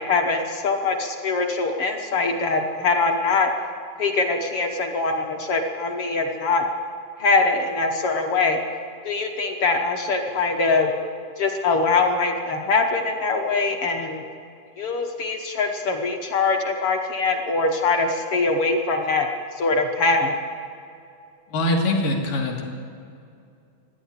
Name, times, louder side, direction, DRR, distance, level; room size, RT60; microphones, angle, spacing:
voice 1, 0.0-3.5 4.0-6.6 7.2-8.6 9.0-10.9 11.4-14.2 14.8-19.3 19.6-20.3, left 3 dB, 60° left, 3 dB, 1.5 m, -23 dB
voice 2, 21.5-22.6, left 1 dB, 80° left, 0 dB, 3.6 m, -23 dB
15.0 x 10.5 x 8.7 m, 2.4 s
omnidirectional pair, 3.8 m